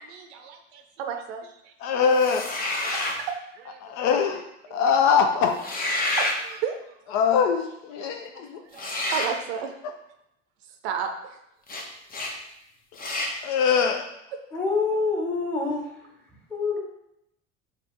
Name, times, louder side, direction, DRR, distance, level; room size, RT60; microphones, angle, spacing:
voice 1, 0.0-1.7 2.9-3.9 6.1-7.0 8.0-9.8 10.6-11.4 14.3-14.4, right 7 dB, 65° right, 6 dB, 0.6 m, -34 dB
voice 2, 1.8-2.5 3.8-4.5 4.7-5.6 7.1-8.6 13.4-14.1, left 6 dB, 55° left, 5 dB, 0.5 m, -22 dB
sound 1, 2.1-3.2 5.5-6.4 8.7-9.3 11.7-11.8 12.1-12.3 13.0-13.3, left 2 dB, 25° left, 0.8 m, -28 dB
voice 3, 14.5-16.1 16.5-16.8, left 4 dB, 5° left, -2 dB, 1.3 m, -26 dB
4.0 x 2.9 x 3.2 m, 0.80 s
hypercardioid pair, 65°, 34 cm